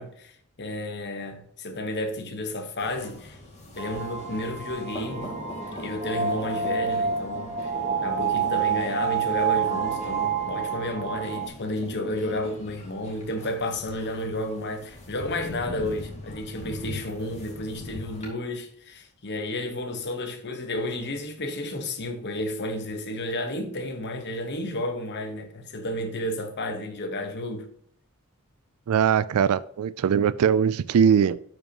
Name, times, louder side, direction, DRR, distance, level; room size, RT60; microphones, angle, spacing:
voice 1, 0.0-3.4 3.8-5.4 5.7-7.7 8.0-27.7, left 1 dB, 50° left, 1.2 m, -32 dB
sound 1, 2.8-18.3, equal, 30° left, 2.3 m, -42 dB
sound 2, 3.8-11.5, right 6 dB, 35° right, 1.9 m, -28 dB
voice 2, 28.9-31.4, right 7 dB, 75° right, 0.4 m, -21 dB
12.0 x 5.2 x 3.0 m
head